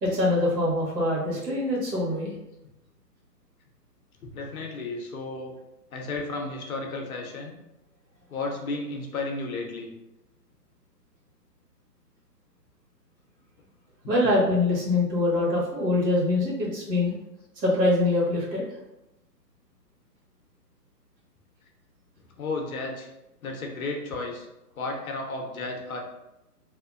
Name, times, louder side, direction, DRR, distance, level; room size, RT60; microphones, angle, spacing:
voice 1, 0.0-2.3 14.1-17.1 17.6-18.6, left 2 dB, 80° right, -4 dB, 1.4 m, -24 dB
voice 2, 4.2-5.5 5.9-7.5 8.3-9.9 14.0-14.3 22.4-23.1 23.4-24.5 24.7-26.0, left 3 dB, 60° left, 1 dB, 0.7 m, -33 dB
2.7 x 2.1 x 2.4 m, 0.92 s
hypercardioid pair, 150°, 49 cm